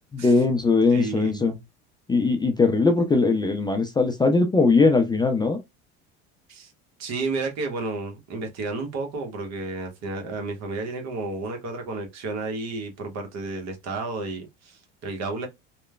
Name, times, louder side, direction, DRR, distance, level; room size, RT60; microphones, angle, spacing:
voice 1, 0.1-1.6 2.1-5.6, left 3 dB, 15° left, 0.4 m, -20 dB
voice 2, 0.9-1.6 6.5-6.7 7.0-15.5, right 3 dB, 55° right, 1.0 m, -32 dB
3.0 x 2.1 x 2.2 m
hypercardioid pair, 80°, 33 cm